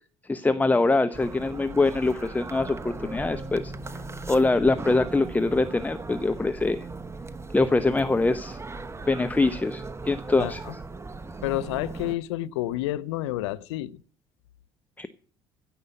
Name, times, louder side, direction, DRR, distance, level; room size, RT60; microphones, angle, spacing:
voice 1, 0.3-3.7 4.3-6.9 7.5-8.6 9.1-10.6 15.0-15.1, left 3 dB, 10° left, 0.8 m, -24 dB
sound 1, 1.1-12.1, right 3 dB, 20° right, 1.0 m, -38 dB
voice 2, 10.4-10.7 11.4-14.0, left 15 dB, 70° left, 0.6 m, -30 dB
16.0 x 5.5 x 8.2 m
figure-of-eight pair, 55°, 15 cm